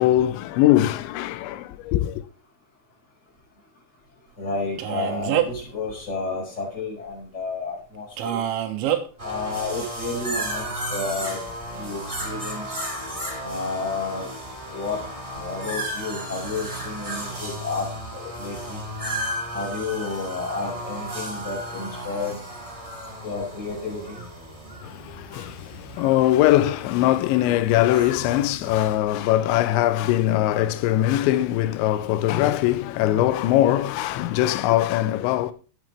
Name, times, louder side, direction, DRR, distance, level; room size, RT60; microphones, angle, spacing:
voice 1, 0.0-2.2 24.8-35.5, left 14 dB, 80° left, 3.1 m, -21 dB
voice 2, 4.4-8.4 9.2-11.5 11.7-12.8 13.4-14.3 14.7-15.0 15.4-18.8 19.5-22.4 23.2-24.2, left 3 dB, 15° left, 5.0 m, -31 dB
Male speech man speaking, 4.8-5.7 8.2-9.0, right 11 dB, 80° right, 3.6 m, -25 dB
sound 1, 9.2-29.0, right 1 dB, 10° right, 1.8 m, -34 dB
15.0 x 8.9 x 3.3 m
omnidirectional pair, 5.4 m